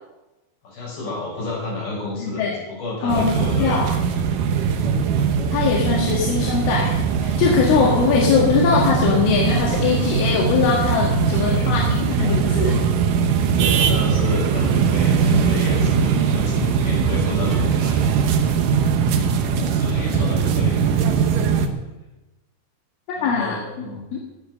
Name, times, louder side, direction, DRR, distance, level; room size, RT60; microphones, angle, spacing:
voice 1, 0.6-4.0 11.3-11.7 13.5-18.3 19.7-20.8 23.1-24.0, left 2 dB, 50° left, -4 dB, 8.2 m, -31 dB
voice 2, 2.2-2.6 3.0-3.9 5.5-12.8 23.2-24.2, left 5 dB, 85° left, -2 dB, 4.2 m, -21 dB
sound 1, 3.1-21.7, right 6 dB, 80° right, 1.9 m, -20 dB
19.0 x 7.6 x 6.6 m, 1.1 s
omnidirectional pair, 5.5 m